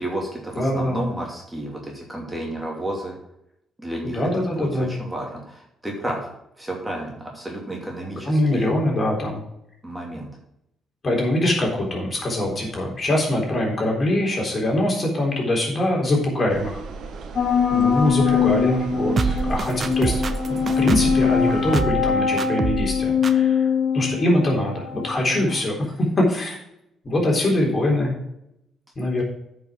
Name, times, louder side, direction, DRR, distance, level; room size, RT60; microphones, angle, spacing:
voice 1, 0.0-3.2 3.8-4.2 4.6-6.3 6.6-8.7 9.8-10.3, right 1 dB, 10° right, -1 dB, 2.6 m, -31 dB
voice 2, 0.5-1.0 4.1-4.9 8.2-9.4 11.0-16.8 17.7-20.2 20.5-23.7 23.9-26.6 27.0-28.1 29.0-29.2, left 1 dB, 35° left, -1 dB, 3.8 m, -23 dB
sound 1, 16.5-21.7, right 4 dB, 65° right, 1.4 m, -36 dB
sound 2, 17.4-25.6, left 6 dB, 55° left, 1.1 m, -22 dB
sound 3, 19.2-21.2 21.7-22.1 22.4-22.9 23.2-23.3, right 4 dB, 45° right, 0.8 m, -25 dB
9.2 x 5.7 x 6.2 m, 0.80 s
cardioid pair, 90°, 0 cm